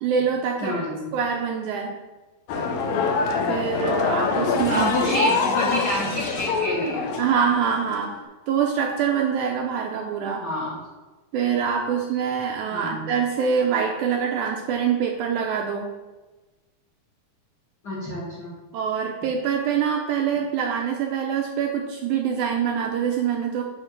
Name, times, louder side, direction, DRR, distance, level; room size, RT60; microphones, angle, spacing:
voice 1, 0.0-0.8 1.1-2.0 3.5-4.9 7.2-8.1 8.5-10.4 11.3-15.9 18.7-23.6, right 7 dB, 75° right, 1 dB, 1.9 m, -24 dB
voice 2, 0.6-1.0 4.7-7.0 10.4-10.8 12.7-13.0 17.8-18.5, equal, 45° left, -5 dB, 1.5 m, -27 dB
sound 1, 2.5-8.2, left 4 dB, 75° left, 1.8 m, -25 dB
7.9 x 3.6 x 6.0 m, 1.2 s
omnidirectional pair, 4.0 m